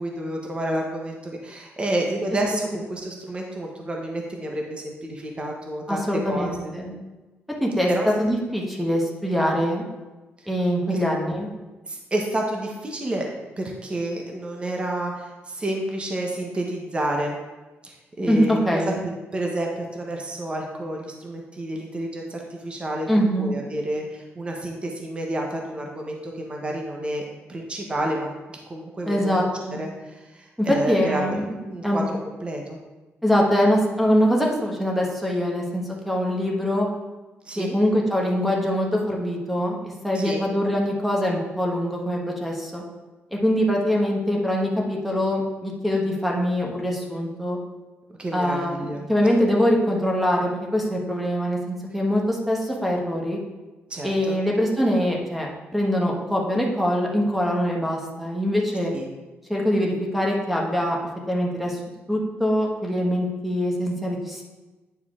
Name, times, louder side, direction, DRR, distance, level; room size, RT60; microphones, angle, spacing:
voice 1, 0.0-6.7 7.9-8.1 10.4-10.5 10.9-11.0 11.9-17.3 17.8-27.2 27.5-28.3 28.7-29.5 29.8-31.2 31.6-32.8 37.4-37.8 40.1-40.5 48.2-49.0 53.9-54.4 58.9-59.1, right 1 dB, 25° right, 0 dB, 0.9 m, -30 dB
voice 2, 5.9-7.0 7.6-7.9 8.2-9.8 10.5-11.5 18.3-19.0 23.1-23.5 29.1-29.8 30.6-31.4 31.8-32.0 33.2-36.9 37.6-39.8 40.0-42.8 43.3-47.6 48.3-53.4 54.0-58.9 59.5-61.0 61.3-61.8 62.1-64.4, equal, ahead, -1 dB, 1.2 m, -23 dB
9.2 x 4.6 x 3.7 m, 1.2 s
cardioid pair, 135°, 5 cm